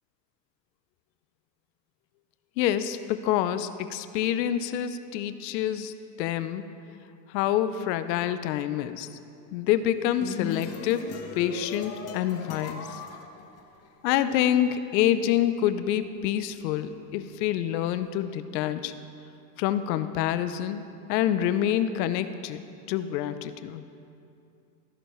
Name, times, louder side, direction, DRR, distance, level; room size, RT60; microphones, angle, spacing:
voice 1, 2.6-6.7 7.3-9.1 9.5-13.0 14.0-18.9 19.6-20.8 21.1-22.6 22.9-23.8, left 11 dB, 80° left, 12 dB, 0.7 m, -27 dB
sound 1, 9.9-14.2, left 6 dB, 30° left, 0.8 m, -38 dB
14.5 x 6.3 x 3.1 m, 2.6 s
supercardioid pair, 120°, 50 cm